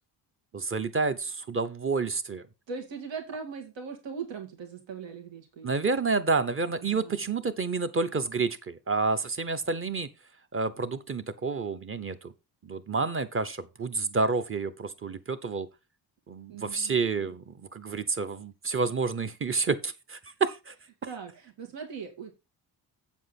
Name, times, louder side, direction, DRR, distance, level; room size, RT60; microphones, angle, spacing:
voice 1, 0.5-2.4 5.6-10.1 10.5-12.3 12.6-15.7 16.3-20.7, right 4 dB, 30° right, 0.8 m, -29 dB
voice 2, 2.7-5.7 6.7-7.2 16.5-17.1 21.0-22.3, right 6 dB, 85° right, 2.3 m, -40 dB
8.1 x 7.4 x 4.1 m
wide cardioid pair, 145°, 43 cm